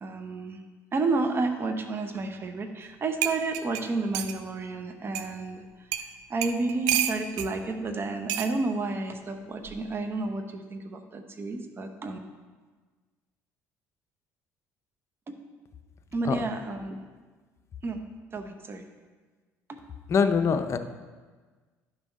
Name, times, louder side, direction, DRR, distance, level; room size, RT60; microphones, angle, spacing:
voice 1, 0.0-0.6 0.9-5.6 6.3-12.2 16.1-17.0 17.8-18.0 18.3-18.8, right 3 dB, 35° right, 6 dB, 1.0 m, -31 dB
sound 1, 2.8-2.9 3.2-4.4 5.1-5.3 5.9-6.1 6.4-7.5 8.3-8.5 9.6-9.9, right 11 dB, 90° right, 0.5 m, -29 dB
voice 2, 20.1-20.8, left 6 dB, 45° left, 8 dB, 0.7 m, -23 dB
10.5 x 5.9 x 4.2 m, 1.4 s
supercardioid pair, 85°, 7 cm